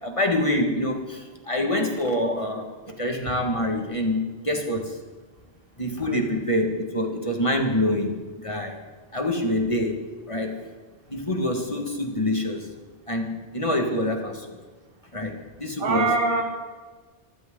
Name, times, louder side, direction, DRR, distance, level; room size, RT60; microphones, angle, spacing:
voice 1, 0.0-5.0 5.8-8.8 9.1-10.6 11.1-12.7 13.1-14.6 15.1-16.1, left 1 dB, 30° left, 2 dB, 2.0 m, -26 dB
voice 2, 15.8-16.4, right 3 dB, 65° right, 2 dB, 1.7 m, -24 dB
23.5 x 15.0 x 3.9 m, 1.3 s
omnidirectional pair, 1.0 m